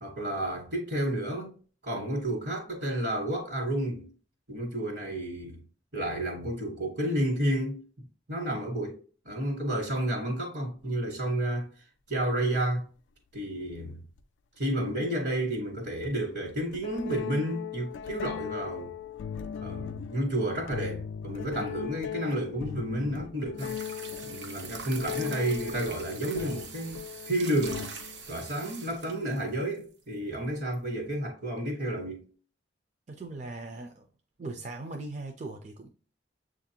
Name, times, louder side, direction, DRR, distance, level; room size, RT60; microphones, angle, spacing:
voice 1, 0.0-1.5 1.8-4.1 4.5-5.6 5.9-7.8 8.3-9.0 9.2-12.9 13.3-14.0 14.6-18.9 19.6-23.8 24.2-27.9 28.3-32.3, right 1 dB, 65° right, 1.4 m, -31 dB
sound 1, 12.5-12.6 14.2-14.3 16.0-16.2 16.7-28.3, left 9 dB, 90° left, 0.3 m, -39 dB
sound 2, 23.6-29.8 30.7-30.8, right 5 dB, 80° right, 0.8 m, -43 dB
voice 2, 33.1-34.1 34.4-35.9, right 2 dB, 40° right, 0.5 m, -39 dB
7.2 x 2.5 x 2.8 m
head